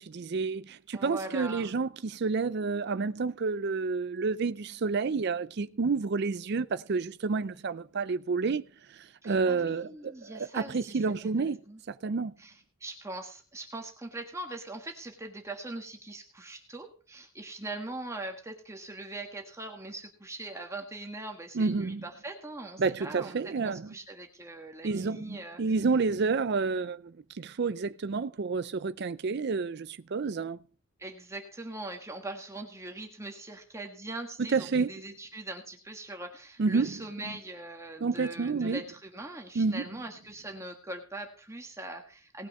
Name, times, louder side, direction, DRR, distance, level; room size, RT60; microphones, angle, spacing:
voice 1, 0.0-8.6 8.9-11.6 11.9-12.3 21.5-22.0 22.8-23.9 24.8-30.6 34.5-34.9 36.6-37.0 38.0-38.8 39.6-39.8, right 4 dB, 50° right, 0.5 m, -29 dB
voice 2, 0.9-1.7 9.2-11.8 12.4-25.7 31.0-42.5, right 2 dB, 15° right, 1.5 m, -41 dB
18.5 x 6.3 x 5.3 m
head